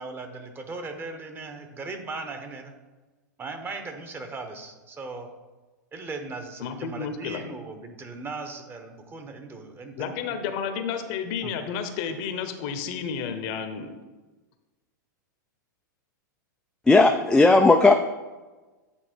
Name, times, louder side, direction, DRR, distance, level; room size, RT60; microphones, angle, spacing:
voice 1, 0.0-2.7 3.4-5.3 5.9-9.9 11.4-11.5, right 3 dB, 20° right, 6 dB, 1.0 m, -38 dB
voice 2, 6.6-7.4 10.0-13.9, left 7 dB, 50° left, 8 dB, 0.9 m, -31 dB
voice 3, 16.9-17.9, left 3 dB, 5° left, 5 dB, 0.4 m, -16 dB
8.9 x 4.1 x 4.5 m, 1.2 s
hypercardioid pair, 105°, 10 cm